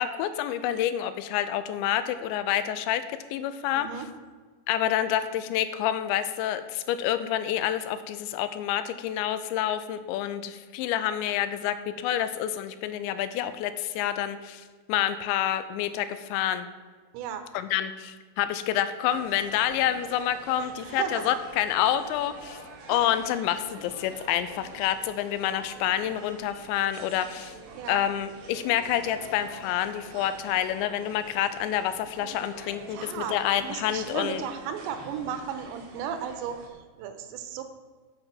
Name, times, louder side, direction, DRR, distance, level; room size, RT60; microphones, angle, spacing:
voice 1, 0.0-3.9 4.7-16.7 17.5-22.6 22.9-27.5 27.9-34.4, left 11 dB, 85° left, 12 dB, 2.9 m, -28 dB
voice 2, 3.7-4.1 17.1-17.5 20.6-21.3 22.9-23.0 27.7-28.0 32.9-37.6, right 8 dB, 90° right, 9 dB, 2.9 m, -35 dB
sound 1, 19.1-36.7, right 3 dB, 60° right, 2.5 m, -46 dB
8.2 x 8.0 x 5.7 m, 1.5 s
omnidirectional pair, 5.2 m